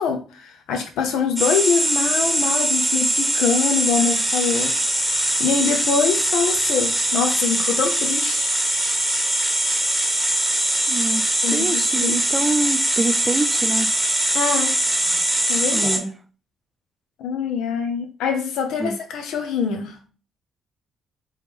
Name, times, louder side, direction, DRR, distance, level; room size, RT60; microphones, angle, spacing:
voice 1, 0.0-8.5 11.4-12.2 14.3-14.7 15.5-16.0 17.2-20.0, left 6 dB, 85° left, 0.5 m, -24 dB
sound 1, 1.4-16.0, right 1 dB, ahead, 1.0 m, -21 dB
voice 2, 10.9-11.2 11.5-13.9 15.7-16.1 18.8-18.9, right 2 dB, 20° right, 0.5 m, -25 dB
3.1 x 3.0 x 3.4 m
cardioid pair, 90°, 0 cm